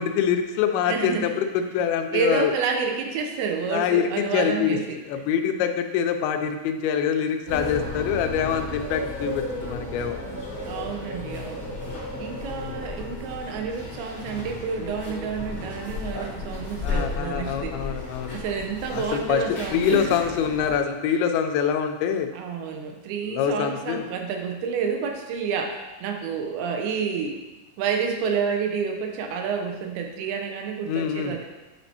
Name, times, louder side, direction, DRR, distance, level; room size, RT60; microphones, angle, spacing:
voice 1, 0.0-2.5 3.7-4.8 5.1-10.2 12.5-12.8 16.8-18.4 18.9-19.4 19.7-22.3 23.3-24.0 30.9-31.4, left 8 dB, 90° left, 6 dB, 2.5 m, -25 dB
voice 2, 0.9-1.3 2.1-5.0 10.7-11.8 12.2-17.9 18.3-20.2 21.1-21.2 22.3-27.4 27.8-31.4, right 6 dB, 90° right, 3 dB, 2.7 m, -29 dB
sound 1, 7.5-20.8, left 2 dB, 65° left, 1.0 m, -34 dB
9.6 x 4.3 x 2.8 m, 1.1 s
omnidirectional pair, 4.4 m